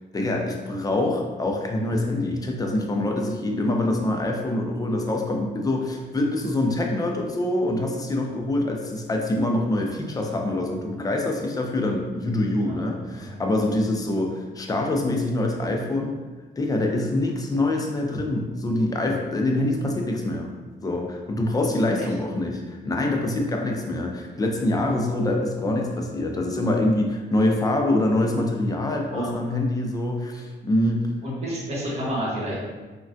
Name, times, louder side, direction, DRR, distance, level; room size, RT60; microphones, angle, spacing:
voice 1, 0.1-16.2 16.6-20.5 20.8-31.1, left 1 dB, 20° left, 1 dB, 0.4 m, -25 dB
voice 2, 31.2-32.6, equal, 35° right, -7 dB, 1.1 m, -30 dB
3.2 x 2.2 x 2.5 m, 1.3 s
cardioid pair, 120°, 18 cm